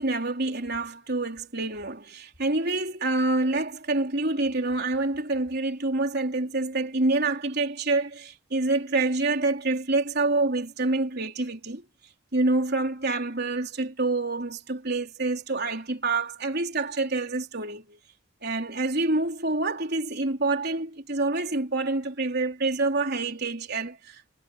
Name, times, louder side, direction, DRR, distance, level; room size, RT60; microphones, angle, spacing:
voice 1, 0.0-11.8 12.3-18.0 18.4-24.2, right 2 dB, 50° right, 3.9 m, -27 dB
head